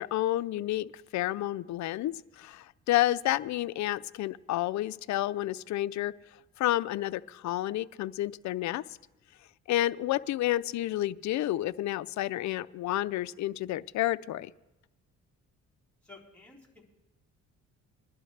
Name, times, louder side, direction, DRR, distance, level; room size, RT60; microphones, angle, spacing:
voice 1, 0.0-6.1 6.6-8.8 9.7-14.5, left 14 dB, 70° left, 16 dB, 0.5 m, -30 dB
voice 2, 16.0-16.8, left 3 dB, 5° left, -6 dB, 4.1 m, -53 dB
21.0 x 11.5 x 3.3 m, 0.98 s
cardioid pair, 90°, 30 cm